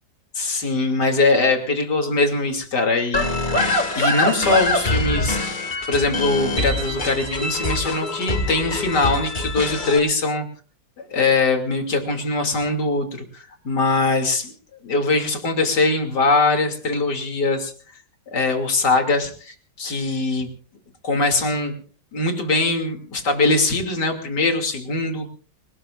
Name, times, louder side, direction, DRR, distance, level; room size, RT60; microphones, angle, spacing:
voice 1, 0.3-3.3 4.0-5.4 5.9-10.5 11.1-14.5 14.8-17.7 18.3-20.5 21.0-21.7 22.1-25.3, left 3 dB, 60° left, 3 dB, 3.3 m, -21 dB
sound 1, 3.1-10.0, left 2 dB, 25° left, 2.2 m, -24 dB
29.0 x 19.0 x 2.5 m, 0.42 s
omnidirectional pair, 2.1 m